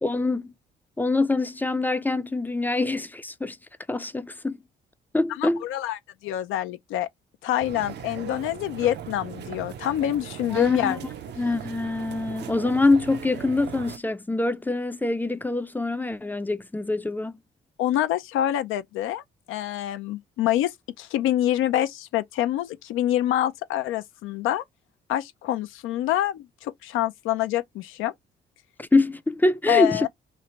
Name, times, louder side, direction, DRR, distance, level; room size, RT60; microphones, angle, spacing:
voice 1, 0.0-0.5 1.0-3.6 3.9-4.6 5.1-5.6 10.5-11.0 11.4-17.3 28.8-30.1, left 2 dB, 10° left, 0.4 m, -24 dB
voice 2, 5.4-7.1 7.4-11.0 17.8-19.2 19.5-20.7 21.0-24.6 25.1-28.1 29.7-30.1, left 13 dB, 90° left, 0.5 m, -26 dB
sound 1, 7.6-14.0, right 9 dB, 60° right, 0.5 m, -39 dB
3.2 x 2.5 x 4.1 m
cardioid pair, 90°, 20 cm